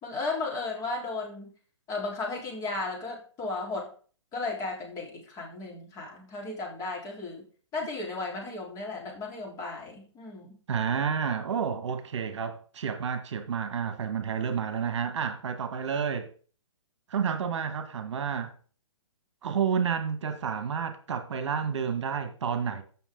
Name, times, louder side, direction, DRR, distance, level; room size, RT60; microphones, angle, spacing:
voice 1, 0.0-1.5 1.9-3.9 4.3-7.4 7.7-10.5, left 3 dB, 20° left, 3.8 m, -35 dB
voice 2, 10.7-16.3 17.1-18.5 19.4-22.8, right 7 dB, 60° right, 1.6 m, -30 dB
15.0 x 6.1 x 3.8 m
hypercardioid pair, 145°, 16 cm